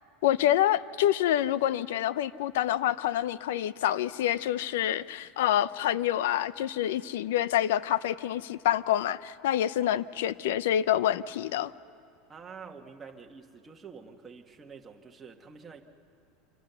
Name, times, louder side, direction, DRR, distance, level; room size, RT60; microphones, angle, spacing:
voice 1, 0.2-11.7, left 12 dB, 85° left, 17 dB, 0.6 m, -27 dB
voice 2, 12.3-15.8, right 5 dB, 15° right, 2 dB, 1.4 m, -47 dB
26.5 x 26.0 x 6.9 m, 2.8 s
supercardioid pair, 160°, 0 cm